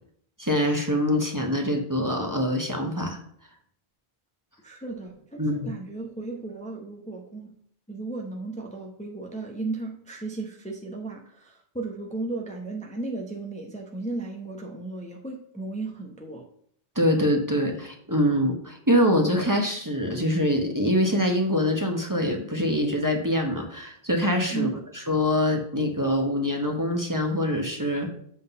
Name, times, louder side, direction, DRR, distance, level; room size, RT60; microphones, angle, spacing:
voice 1, 0.4-3.2 5.4-5.7 17.0-24.7 24.9-28.1, equal, 20° right, 2 dB, 1.0 m, -24 dB
voice 2, 4.6-7.5 7.9-16.4 24.5-24.8, right 3 dB, 10° left, 0 dB, 0.8 m, -35 dB
7.8 x 3.8 x 5.4 m, 0.65 s
omnidirectional pair, 1.0 m